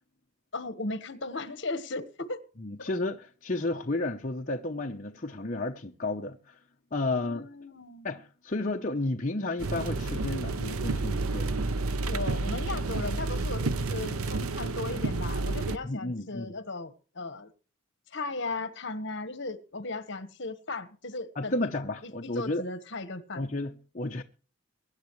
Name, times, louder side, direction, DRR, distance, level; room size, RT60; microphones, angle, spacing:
voice 1, 0.5-2.4 2.8-2.9 7.1-8.1 12.0-17.5 18.1-21.5 22.0-23.4, left 3 dB, 55° left, 1.4 m, -37 dB
voice 2, 2.6-6.6 6.9-7.5 8.0-11.6 15.8-16.6 21.4-22.6 23.3-24.2, left 2 dB, 35° left, 0.8 m, -32 dB
sound 1, 9.6-15.8, right 3 dB, 85° right, 0.8 m, -30 dB
23.0 x 10.5 x 3.2 m
head